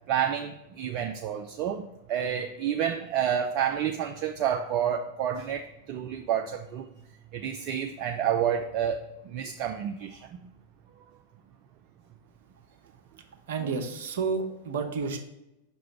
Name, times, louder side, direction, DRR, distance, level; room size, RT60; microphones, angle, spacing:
voice 1, 0.1-6.9 7.3-10.5 13.6-13.7, right 9 dB, 40° right, 5 dB, 0.3 m, -29 dB
voice 2, 13.5-15.2, right 5 dB, 55° right, 4 dB, 0.8 m, -30 dB
5.9 x 3.0 x 5.6 m, 0.91 s
figure-of-eight pair, 90°, 0 cm